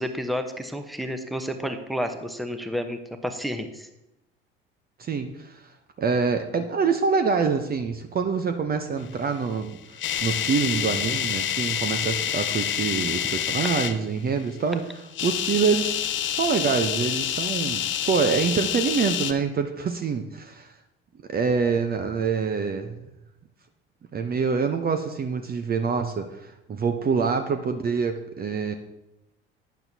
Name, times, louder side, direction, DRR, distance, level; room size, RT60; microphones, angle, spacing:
voice 1, 0.0-3.9, equal, ahead, 7 dB, 1.0 m, -30 dB
voice 2, 5.0-5.7 6.0-14.8 15.2-20.7 21.3-23.1 24.1-28.7, right 5 dB, 30° right, 7 dB, 0.8 m, -26 dB
sound 1, 9.5-13.9 15.1-19.3, left 10 dB, 40° left, 0.7 m, -27 dB
11.5 x 9.3 x 2.8 m, 0.90 s
hypercardioid pair, 65°, 30 cm